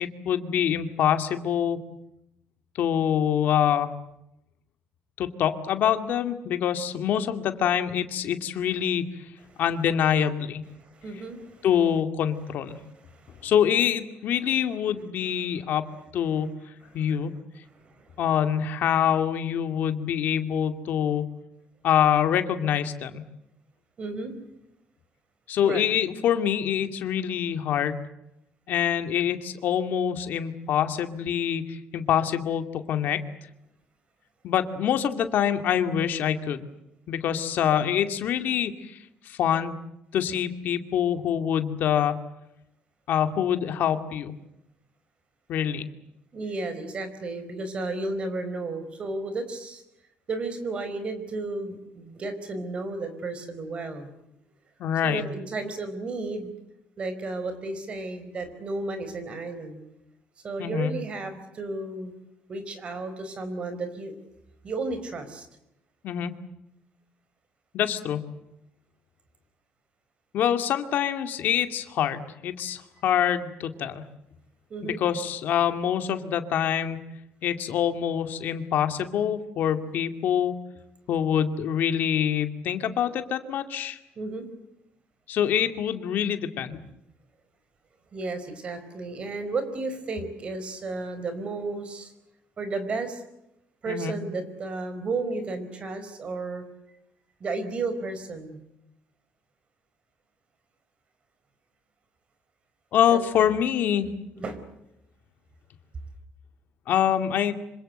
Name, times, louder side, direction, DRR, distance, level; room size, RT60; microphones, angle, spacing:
voice 1, 0.0-1.8 2.8-3.9 5.2-9.0 9.6-10.6 11.6-12.8 13.4-15.9 16.1-16.5 16.9-17.3 18.2-21.3 21.8-23.2 25.5-28.0 28.7-33.2 34.4-36.7 37.1-39.0 39.2-39.8 40.1-42.2 43.1-44.3 45.5-45.9 54.8-55.2 60.6-60.9 66.0-66.3 67.7-68.2 70.3-74.0 74.8-77.0 77.4-80.5 81.1-84.0 85.3-86.8 93.9-94.1 102.9-104.1 106.9-107.5, left 9 dB, 55° left, 8 dB, 2.3 m, -25 dB
voice 2, 10.8-11.7 12.7-13.5 16.8-17.0 17.7-18.1 24.0-24.3 25.6-25.8 46.3-49.8 50.3-54.1 55.0-56.5 57.0-59.8 60.4-62.1 62.5-64.1 64.6-65.5 74.7-75.0 84.2-84.5 88.1-92.1 92.6-93.2 93.8-96.6 97.4-98.6 103.1-103.5 104.3-104.6, right 3 dB, 30° right, 10 dB, 4.6 m, -33 dB
26.5 x 25.5 x 7.9 m, 0.84 s
cardioid pair, 175°, 4 cm